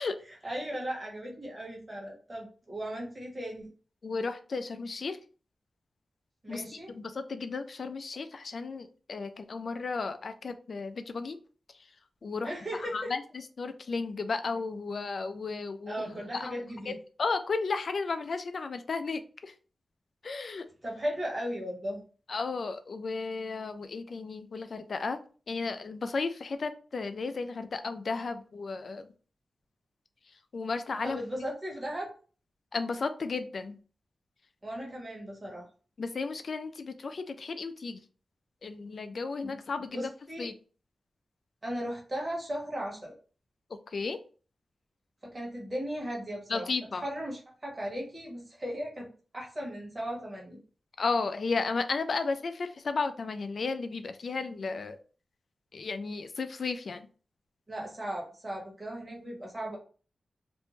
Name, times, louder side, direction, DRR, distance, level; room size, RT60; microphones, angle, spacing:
voice 1, 0.3-3.7 6.4-6.9 12.4-13.1 15.9-17.0 20.8-22.0 31.0-32.1 34.6-35.7 39.4-39.5 39.9-40.5 41.6-43.1 45.2-50.6 57.7-59.8, equal, 30° right, -2 dB, 1.1 m, -37 dB
voice 2, 4.0-5.2 6.5-11.4 12.2-12.5 12.9-13.2 13.6-16.9 17.2-19.5 20.2-20.7 22.3-25.2 25.5-29.1 30.5-31.2 32.7-33.8 36.0-38.0 38.6-40.1 40.4-40.5 43.9-44.2 46.5-47.0 51.0-55.0 55.7-57.0, left 4 dB, 60° left, 9 dB, 0.3 m, -34 dB
2.5 x 2.1 x 3.0 m, 0.39 s
wide cardioid pair, 85°, 0 cm